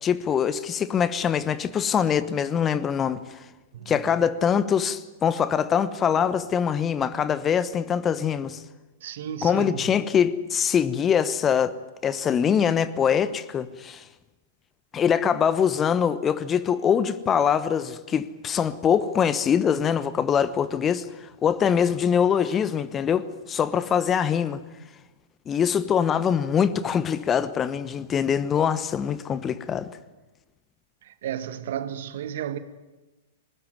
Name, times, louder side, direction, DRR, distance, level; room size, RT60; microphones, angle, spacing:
voice 1, 0.0-3.4 3.9-8.6 9.4-14.0 14.9-24.6 25.5-30.0, left 8 dB, 25° left, 1.1 m, -23 dB
voice 2, 3.7-4.1 9.0-9.8 31.0-32.6, right 10 dB, 60° right, 1.6 m, -33 dB
21.0 x 19.5 x 9.5 m
figure-of-eight pair, 105°, 0 cm